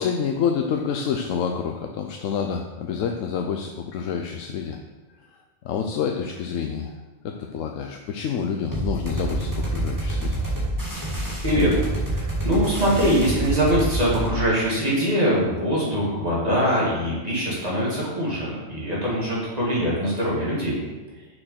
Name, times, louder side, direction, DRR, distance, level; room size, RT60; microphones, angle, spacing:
voice 1, 0.0-4.8 5.6-10.4, left 7 dB, 90° left, 4 dB, 1.0 m, -28 dB
sound 1, 8.7-14.3, right 1 dB, 15° right, 2.2 m, -27 dB
voice 2, 12.1-20.8, equal, 30° right, -6 dB, 2.7 m, -23 dB
6.6 x 6.6 x 5.7 m, 1.2 s
omnidirectional pair, 1.3 m